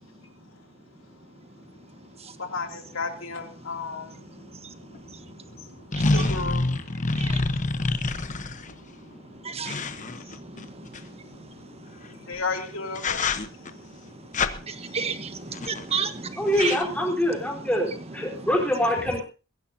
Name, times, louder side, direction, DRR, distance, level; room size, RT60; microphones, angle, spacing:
voice 1, 2.5-4.1 6.1-6.6 12.3-13.2, left 4 dB, 75° left, 4 dB, 2.8 m, -32 dB
voice 2, 4.1-6.3 7.2-7.4 7.8-8.3 8.7-12.4 13.4-17.6 18.2-18.5, right 5 dB, 30° right, 10 dB, 1.3 m, -36 dB
sound 1, 4.9-5.0 5.9-8.7 9.7-11.0 12.4-12.6 13.0-13.7 14.3-14.5 15.5-15.9 16.2-16.3 16.5-16.8, left 3 dB, 40° left, 1.0 m, -27 dB
voice 3, 16.4-19.2, equal, 5° left, 0 dB, 4.1 m, -25 dB
21.5 x 16.0 x 2.8 m, 0.32 s
head